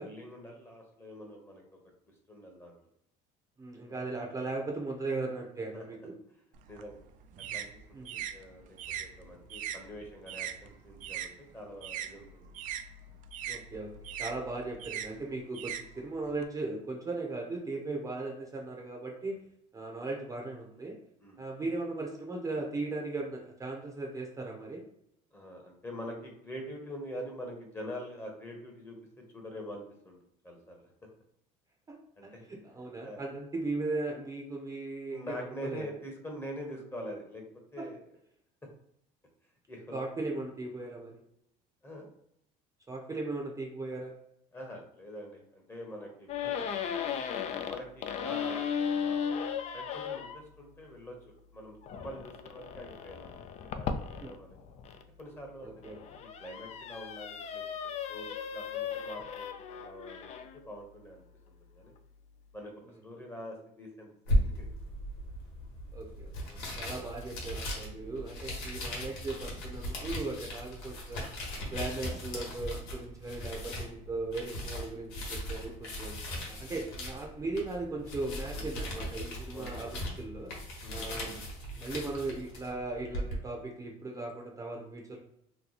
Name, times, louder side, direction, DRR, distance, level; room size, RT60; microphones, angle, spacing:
voice 1, 0.0-1.6 2.3-2.7 3.9-4.1 5.7-6.1 6.7-7.0 7.5-12.5 21.2-21.4 25.3-30.2 30.4-30.9 32.2-32.5 33.0-33.3 35.1-37.4 37.7-38.0 39.7-40.0 41.8-42.1 44.5-46.8 47.7-48.7 49.0-49.4 49.7-51.2 51.5-54.6 55.2-55.7 56.2-57.6 58.1-58.3 58.5-61.9 62.5-62.7 63.0-64.7 66.7-66.9 71.5-71.7 78.5-78.7 79.5-79.9 80.8-81.0, equal, 15° left, 1 dB, 0.9 m, -45 dB
voice 2, 3.6-6.1 7.9-8.2 13.5-19.4 19.7-21.0 21.4-24.8 31.9-35.9 37.8-37.9 39.9-41.1 42.9-44.2 46.4-46.5 54.2-54.3 55.6-56.0 65.9-71.3 71.7-76.1 76.5-80.5 80.9-81.4 81.7-85.2, right 3 dB, 20° right, 0 dB, 0.7 m, -38 dB
sound 1, 6.5-11.3 11.6-16.4, right 9 dB, 55° right, 0.4 m, -40 dB
sound 2, 46.3-50.4 51.8-55.0 55.6-60.6, left 7 dB, 45° left, 0.4 m, -36 dB
sound 3, 64.3-83.4, equal, 85° left, 1.3 m, -37 dB
3.0 x 2.2 x 3.9 m, 0.76 s
cardioid pair, 120°, 16 cm